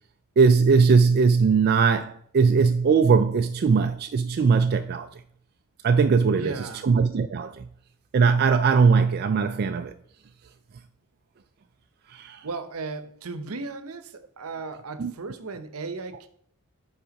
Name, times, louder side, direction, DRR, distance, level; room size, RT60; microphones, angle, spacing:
voice 1, 0.4-5.1 5.8-7.7 8.1-9.9 12.1-12.5 15.0-15.1, right 5 dB, 45° right, 0.3 m, -20 dB
voice 2, 6.3-6.9 12.4-16.3, right 3 dB, 75° right, 0.8 m, -36 dB
8.5 x 4.8 x 5.1 m
head